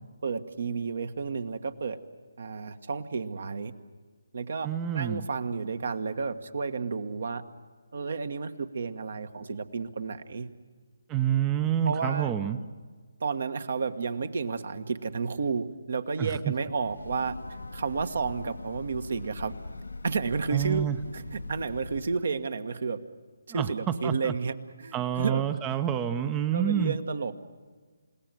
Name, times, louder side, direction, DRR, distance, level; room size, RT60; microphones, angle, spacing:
voice 1, 0.2-2.0 2.4-3.7 4.3-7.4 7.9-10.5 11.8-12.3 13.2-17.4 17.7-19.5 20.0-23.0 23.5-25.4 26.5-27.4, right 5 dB, 55° right, 10 dB, 1.5 m, -31 dB
voice 2, 4.6-5.2 11.1-12.6 16.2-16.4 20.5-21.0 23.5-24.3 24.9-26.9, right 9 dB, 15° right, 10 dB, 0.8 m, -28 dB
Breathing / Train, 16.8-22.3, left 3 dB, 70° left, 1.1 m, -41 dB
29.0 x 17.5 x 9.2 m, 1.5 s
figure-of-eight pair, 145°, 0 cm